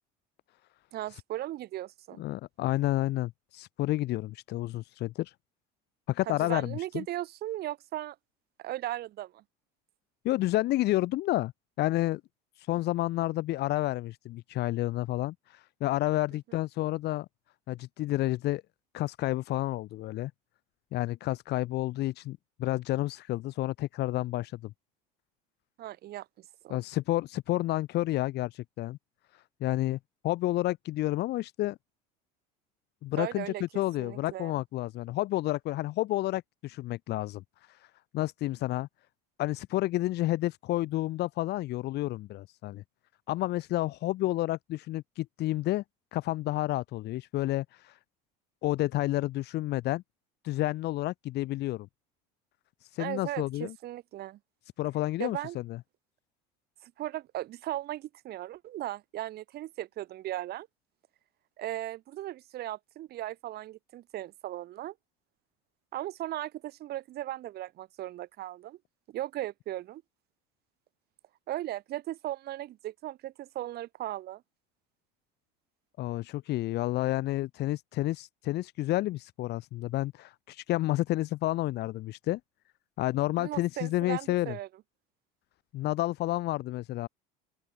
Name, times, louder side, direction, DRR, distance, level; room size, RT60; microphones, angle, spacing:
voice 1, 0.9-2.2 6.3-8.2 8.6-9.4 25.8-26.8 33.2-33.6 34.0-34.6 53.0-54.4 55.2-55.6 56.8-60.7 61.6-64.9 65.9-68.8 69.1-70.0 71.5-74.4 83.4-84.7, right 14 dB, 55° right, 6.4 m, -37 dB
voice 2, 2.2-5.3 6.1-7.0 10.2-11.5 11.8-12.2 12.5-17.3 17.7-18.6 18.9-20.3 20.9-24.7 26.7-29.0 29.3-30.0 30.2-31.8 33.0-37.9 38.1-38.9 39.4-42.8 43.3-45.8 46.1-48.0 48.6-50.0 50.4-51.9 52.8-53.7 54.8-55.8 76.0-82.4 83.0-84.5 85.7-87.1, left 16 dB, 60° left, 4.2 m, -30 dB
open air
supercardioid pair, 110°, 20 cm